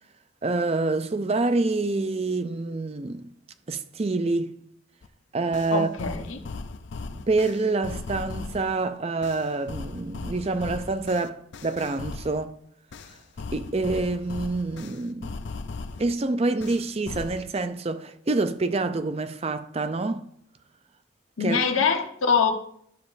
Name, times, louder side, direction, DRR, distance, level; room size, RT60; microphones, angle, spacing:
voice 1, 0.4-3.3 3.7-4.5 5.3-5.9 7.3-12.5 13.5-15.4 16.0-20.3 21.4-21.6, right 3 dB, 30° right, 0.4 m, -27 dB
sound 1, 5.0-5.1 5.5-8.8 9.2-12.5 12.9-16.1 16.6-17.5, left 3 dB, 60° left, 0.4 m, -38 dB
voice 2, 5.7-6.4 21.4-22.5, left 5 dB, 80° left, 1.0 m, -23 dB
11.5 x 7.0 x 2.6 m
head